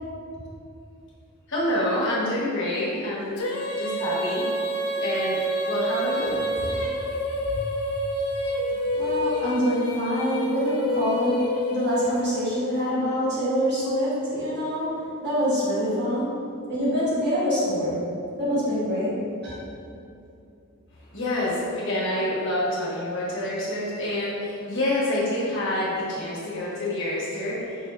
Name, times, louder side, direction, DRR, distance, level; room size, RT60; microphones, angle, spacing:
voice 1, 1.5-3.4 3.8-4.4 5.0-5.4 5.7-6.4 21.1-27.8, left 1 dB, 55° left, -8 dB, 1.2 m, -27 dB
Female singing, 3.4-12.5, equal, 85° left, 0.5 m, -28 dB
voice 2, 8.9-11.4 11.7-14.9 15.2-16.3 16.7-18.0 18.4-19.1 19.4-19.5, equal, 50° right, -9 dB, 1.4 m, -25 dB
5.0 x 3.3 x 2.4 m, 2.6 s
head